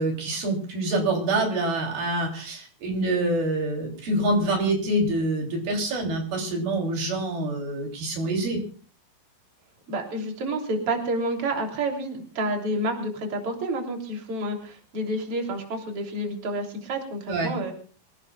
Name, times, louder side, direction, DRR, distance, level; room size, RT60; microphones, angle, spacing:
voice 1, 0.0-8.6 17.3-17.5, right 2 dB, 80° right, 1 dB, 5.2 m, -26 dB
voice 2, 9.9-17.7, right 1 dB, 40° right, 2 dB, 4.0 m, -29 dB
26.0 x 17.5 x 2.4 m, 0.40 s
omnidirectional pair, 4.2 m